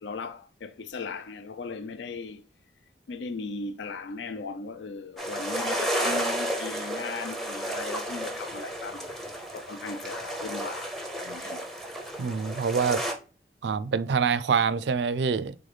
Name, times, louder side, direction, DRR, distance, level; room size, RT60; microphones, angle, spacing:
voice 1, 0.0-2.5 3.1-9.2 9.5-10.9 11.2-11.6, left 4 dB, 85° left, 0.4 m, -37 dB
sound 1, 5.2-13.1, right 1 dB, ahead, 0.6 m, -32 dB
voice 2, 12.2-13.0 13.6-15.6, right 6 dB, 75° right, 0.4 m, -25 dB
3.9 x 3.4 x 3.3 m
head